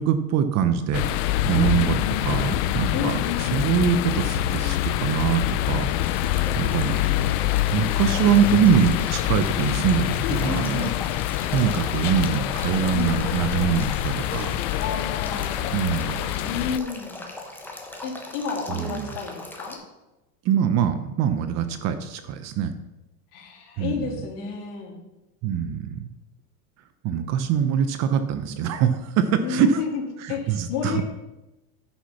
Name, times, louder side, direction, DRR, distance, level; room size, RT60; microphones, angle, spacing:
voice 1, 0.0-6.9 7.7-10.9 11.4-14.6 15.7-16.3 18.7-19.2 20.4-22.7 23.8-24.2 25.4-26.1 27.0-29.7 30.2-31.0, right 8 dB, 35° right, 10 dB, 0.7 m, -24 dB
sound 1, 0.9-16.8, left 13 dB, 50° left, 0.6 m, -25 dB
voice 2, 1.5-2.5 2.9-3.4 6.7-7.5 10.2-11.0 12.9-13.1 14.7-15.8 16.4-17.2 18.0-19.8 23.3-25.0 29.4-30.0 30.3-31.0, left 6 dB, 65° left, 0 dB, 3.1 m, -31 dB
Male speech man speaking / Stream / Trickle dribble, 5.8-19.7, left 2 dB, 5° left, 1.1 m, -40 dB
10.0 x 5.8 x 5.8 m, 1.0 s
supercardioid pair, 135°, 48 cm